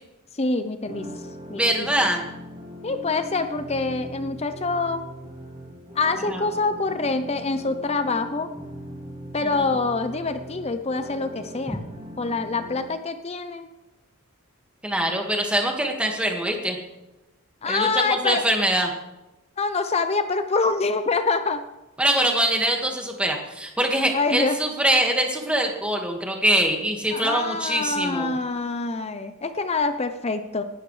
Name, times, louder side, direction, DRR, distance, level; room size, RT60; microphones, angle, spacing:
voice 1, 0.3-1.1 1.5-1.9 2.8-5.0 6.0-8.5 9.3-11.8 12.2-13.7 17.6-18.5 19.6-21.6 24.1-24.6 27.1-30.6, left 3 dB, 30° left, 9 dB, 0.6 m, -25 dB
sound 1, 0.8-12.8, equal, 30° right, 4.5 m, -40 dB
voice 2, 1.5-2.3 6.3-6.4 9.4-9.7 11.7-11.8 14.8-16.8 17.7-18.9 22.0-28.3, right 1 dB, 5° right, 2 dB, 1.8 m, -23 dB
18.5 x 12.0 x 3.3 m, 0.99 s
head